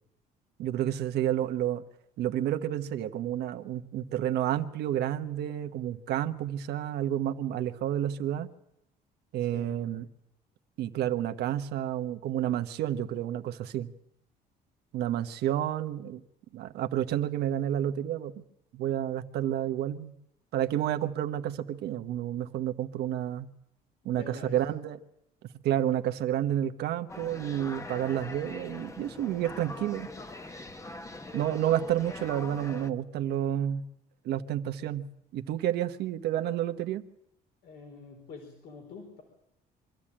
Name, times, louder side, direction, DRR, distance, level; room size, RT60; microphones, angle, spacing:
voice 1, 0.6-1.8 2.2-8.5 9.3-10.1 10.8-13.9 14.9-16.2 16.5-18.4 18.7-20.1 20.5-23.5 24.0-25.0 25.6-30.1 31.3-33.8 34.2-37.0, right 11 dB, 75° right, 9 dB, 1.2 m, -30 dB
voice 2, 24.0-24.6 37.6-39.2, left 4 dB, 75° left, 1 dB, 4.5 m, -46 dB
sound 1, 27.1-32.9, left 2 dB, 20° left, 1.2 m, -42 dB
24.5 x 13.5 x 8.8 m, 0.79 s
cardioid pair, 110°, 17 cm